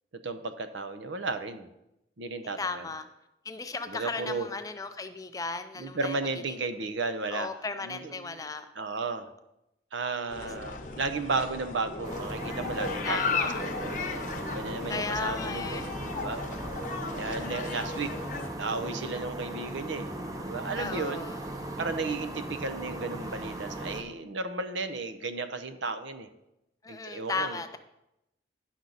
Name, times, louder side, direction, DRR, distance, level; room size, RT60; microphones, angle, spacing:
voice 1, 0.2-1.7 2.2-2.9 3.9-4.5 5.8-7.5 7.8-8.3 8.7-9.3 9.9-14.0 14.5-15.8 16.2-16.6 17.1-18.1 18.5-20.1 20.4-21.3 21.8-26.3 26.9-27.6, right 3 dB, 80° right, 9 dB, 0.7 m, -34 dB
voice 2, 2.6-3.1 3.4-6.2 6.5-6.6 7.3-8.7 10.4-10.5 13.0-13.6 14.9-15.9 17.4-17.5 18.9-19.3 20.8-21.4 26.8-27.8, left 4 dB, 20° left, 9 dB, 0.4 m, -35 dB
sound 1, 10.3-18.5, left 4 dB, 45° left, 0.8 m, -35 dB
sound 2, 12.0-24.0, right 1 dB, 20° right, 0.7 m, -38 dB
10.0 x 6.2 x 4.0 m, 0.89 s
head